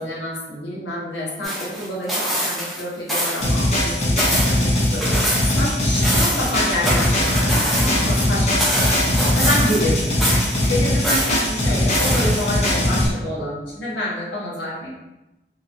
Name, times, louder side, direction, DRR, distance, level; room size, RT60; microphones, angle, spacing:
voice 1, 0.0-5.3 5.5-8.9 9.3-10.0 10.7-14.9, left 1 dB, 80° left, -6 dB, 1.1 m, -27 dB
sound 1, 1.4-2.8 3.1-3.5 3.8-5.6 5.9-8.2 8.6-9.9 10.2-11.4 11.9-12.7 13.1-13.2, equal, ahead, 0.6 m, -24 dB
sound 2, 3.4-13.1, left 1 dB, 40° left, 0.9 m, -20 dB
3.0 x 2.9 x 2.5 m, 0.99 s
head